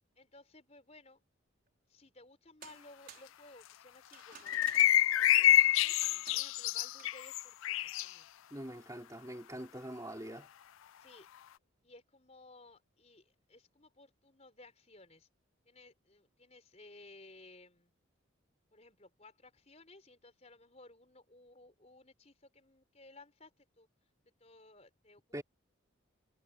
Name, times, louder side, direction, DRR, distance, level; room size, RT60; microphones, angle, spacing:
voice 1, 0.2-1.2 1.9-6.0 6.3-8.3 11.0-11.3 11.8-15.3 15.6-17.9 18.7-23.9 24.4-25.4, left 2 dB, 30° left, 4.8 m, -58 dB
sound 1, 2.6-3.3 4.1-5.1 6.0-6.5 7.0-7.2, right 8 dB, 45° right, 4.8 m, -53 dB
sound 2, 4.5-8.1, left 13 dB, 70° left, 0.4 m, -27 dB
voice 2, 8.5-10.5 25.3-25.4, right 1 dB, 15° right, 3.6 m, -43 dB
head